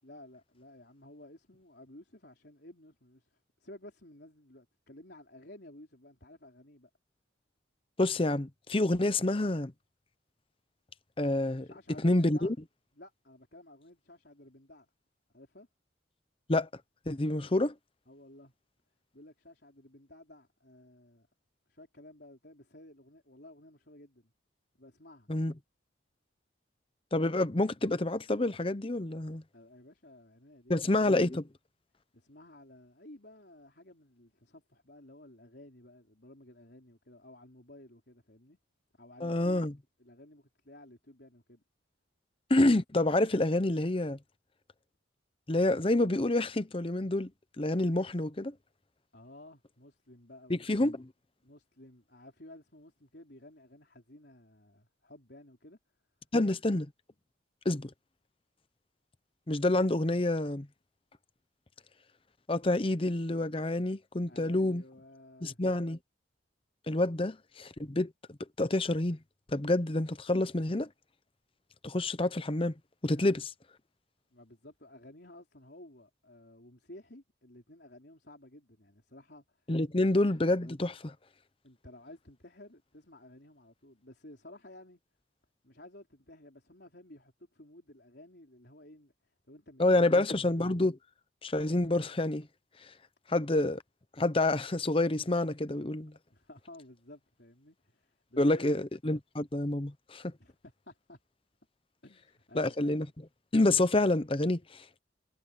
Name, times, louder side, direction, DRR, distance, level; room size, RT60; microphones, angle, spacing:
voice 1, 0.0-6.9 11.6-12.5 12.9-14.9 15.3-15.7 18.1-18.5 19.1-21.3 21.7-24.3 24.7-25.3 29.5-30.8 32.1-38.6 38.9-39.7 40.0-41.6 49.1-50.8 51.4-55.8 64.3-65.7 73.1-73.4 74.3-79.7 81.6-85.0 85.6-90.2 96.3-98.7 100.4-101.2 102.0-103.0, left 1 dB, 60° left, 4.5 m, -54 dB
voice 2, 8.0-9.7 11.2-11.7 12.0-12.5 16.5-16.7 17.1-17.7 25.3-25.5 27.1-29.4 30.7-31.4 39.2-39.7 42.5-44.2 45.5-47.3 47.6-48.5 50.5-51.0 56.3-56.9 57.6-57.9 59.5-60.7 62.5-64.8 65.4-66.0 66.9-68.1 68.6-69.2 69.5-70.9 71.8-72.7 73.0-73.5 79.7-81.1 89.8-91.0 91.4-92.5 93.3-93.8 94.2-96.1 98.4-100.3 102.6-103.1 103.5-104.8, left 2 dB, 30° left, 0.8 m, -28 dB
head